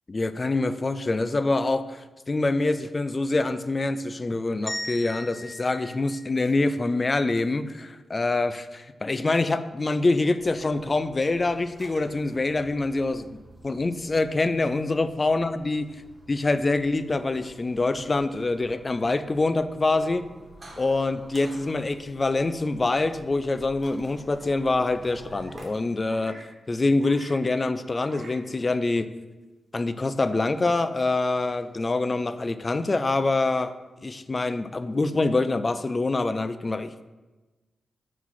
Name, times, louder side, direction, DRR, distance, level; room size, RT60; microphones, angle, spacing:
voice 1, 0.1-13.3 13.6-15.9 16.3-20.3 20.8-26.4 26.7-29.1 29.7-33.7 34.0-37.0, left 2 dB, 40° left, 12 dB, 0.4 m, -25 dB
sound 1, 4.7-6.9, left 1 dB, 15° left, 1.0 m, -38 dB
sound 2, 10.4-25.7, right 1 dB, 40° right, 1.4 m, -49 dB
sound 3, 22.5-22.6 24.2-25.7 26.0-27.4 28.0-28.4 28.7-28.8 29.9-30.0 30.9-32.4, right 2 dB, 70° right, 1.1 m, -49 dB
4.7 x 4.0 x 5.7 m, 1.2 s
cardioid pair, 50°, 0 cm